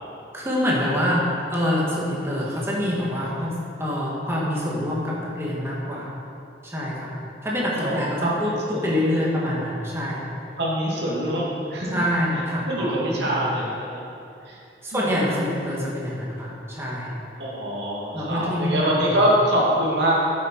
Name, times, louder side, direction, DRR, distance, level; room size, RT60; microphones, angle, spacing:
voice 1, 0.3-6.1 6.6-7.2 7.4-10.3 11.9-13.5 14.8-17.1 18.1-19.2, left 1 dB, 15° right, -5 dB, 1.7 m, -26 dB
voice 2, 7.7-9.1 10.6-12.0 12.7-14.0 14.4-14.6 14.9-15.1 17.4-20.1, right 1 dB, 70° right, -5 dB, 2.4 m, -24 dB
9.9 x 7.6 x 4.6 m, 2.7 s
head